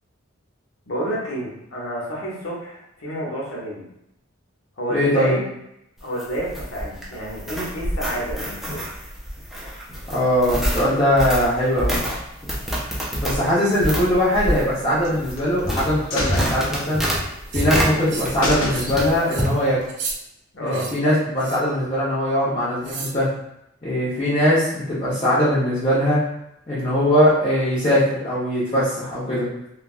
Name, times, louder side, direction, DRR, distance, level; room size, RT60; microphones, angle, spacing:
voice 1, 0.9-3.8 4.8-5.5 6.0-8.8 20.5-20.9, equal, 70° left, -5 dB, 1.0 m, -29 dB
voice 2, 4.9-5.4 10.1-12.0 13.2-17.0 17.5-19.8 20.6-23.3 23.8-26.2 26.7-29.4, equal, 25° left, -11 dB, 0.8 m, -21 dB
sound 1, 6.0-18.6 18.9-19.6, equal, ahead, 0.4 m, -27 dB
sound 2, 15.0-15.7 16.1-17.4 17.7-17.8 18.1-18.2 18.4-19.3 19.7-19.8, left 1 dB, 90° left, 0.6 m, -28 dB
sound 3, 17.5-17.7 18.1-18.4 18.7-18.9 19.3-19.5 19.9-20.2 20.7-20.9 21.4-21.7 22.8-23.2, right 4 dB, 55° right, 0.5 m, -33 dB
3.2 x 2.3 x 2.4 m, 0.81 s
head